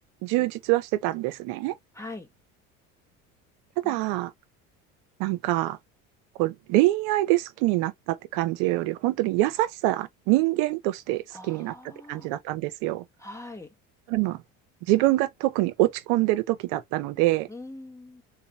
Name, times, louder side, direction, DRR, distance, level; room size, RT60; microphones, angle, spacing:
voice 1, 0.2-1.7 3.8-4.3 5.2-5.8 6.4-11.7 12.1-13.0 14.1-14.4 14.9-17.5, right 17 dB, 75° right, 0.7 m, -25 dB
voice 2, 1.9-2.3 3.8-4.0 11.3-12.3 13.2-13.7 17.5-18.2, left 2 dB, 10° left, 1.4 m, -42 dB
3.9 x 2.9 x 2.8 m
supercardioid pair, 100°, 34 cm